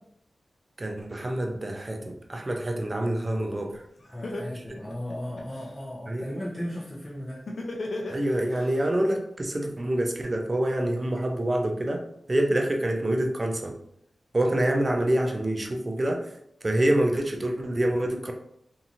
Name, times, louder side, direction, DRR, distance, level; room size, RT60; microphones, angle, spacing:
voice 1, 0.8-3.8 4.5-4.6 6.1-6.3 8.1-13.8 14.3-16.3 16.6-18.3, right 1 dB, 35° right, 3 dB, 0.5 m, -26 dB
Laughter, 3.7-3.8 4.2-5.7 7.5-8.7, left 2 dB, 75° left, 0.5 m, -34 dB
voice 2, 4.1-7.4, left 1 dB, ahead, -7 dB, 0.8 m, -36 dB
2.8 x 2.6 x 2.5 m, 0.72 s
cardioid pair, 50°, 0 cm